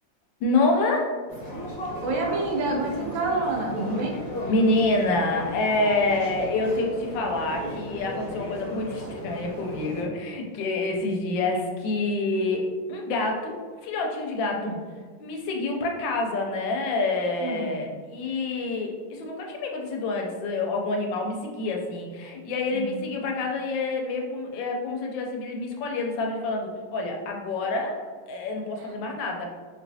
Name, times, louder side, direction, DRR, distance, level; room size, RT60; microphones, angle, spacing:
voice 1, 0.4-1.2 4.5-13.6 13.8-14.7 15.2-28.0 28.3-29.5, left 2 dB, 75° left, 1 dB, 1.2 m, -27 dB
sound 1, 1.3-10.0, equal, 35° left, 0.8 m, -35 dB
voice 2, 2.0-4.2 14.5-14.8 17.4-17.9 22.7-23.1 28.8-28.9, right 3 dB, 85° right, 0 dB, 1.4 m, -29 dB
3.0 x 2.9 x 2.7 m, 1.5 s
omnidirectional pair, 2.1 m